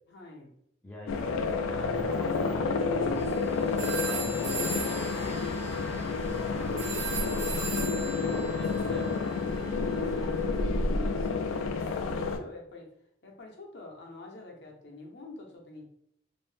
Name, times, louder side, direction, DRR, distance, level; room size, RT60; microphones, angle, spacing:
voice 1, 0.1-0.5 2.3-4.8 5.1-6.0 9.4-12.9 13.2-15.9, left 2 dB, 60° left, 0 dB, 0.6 m, -45 dB
voice 2, 0.8-3.4 3.8-5.0 5.8-7.7 8.1-9.2 10.6-11.0, left 1 dB, 5° left, -4 dB, 0.3 m, -45 dB
sound 1, 1.1-12.4, left 4 dB, 85° left, 0.3 m, -30 dB
sound 2, 3.2-3.4 3.8-10.4, right 5 dB, 80° right, 0.7 m, -38 dB
2.6 x 2.0 x 3.1 m, 0.70 s
head